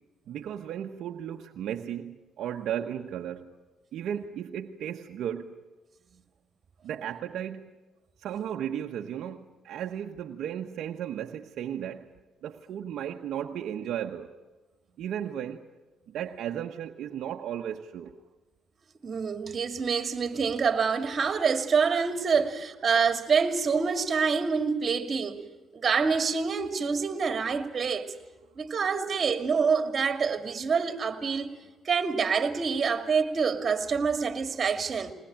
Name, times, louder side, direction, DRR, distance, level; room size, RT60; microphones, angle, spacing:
voice 1, 0.3-3.5 3.9-5.5 6.8-7.7 8.2-12.1 12.4-14.3 15.0-15.6 16.1-18.1, right 9 dB, 75° right, 1.1 m, -35 dB
voice 2, 19.0-25.4 25.7-28.1 28.6-31.5 31.8-35.1, right 5 dB, 45° right, 2.4 m, -26 dB
21.5 x 20.0 x 8.8 m
cardioid pair, 90°, 0 cm